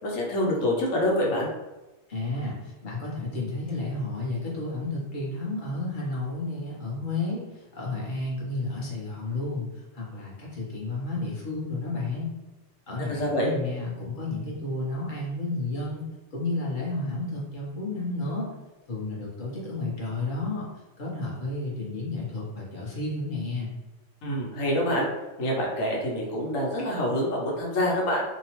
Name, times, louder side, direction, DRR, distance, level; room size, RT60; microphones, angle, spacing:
voice 1, 0.0-1.5 13.1-13.5 24.2-25.1 25.4-28.2, left 1 dB, 80° left, -3 dB, 1.2 m, -26 dB
voice 2, 2.1-12.3 12.9-16.0 16.3-18.5 18.9-20.6 21.0-23.8, left 2 dB, 45° left, -5 dB, 0.9 m, -32 dB
2.8 x 2.0 x 2.9 m, 1.1 s
omnidirectional pair, 1.3 m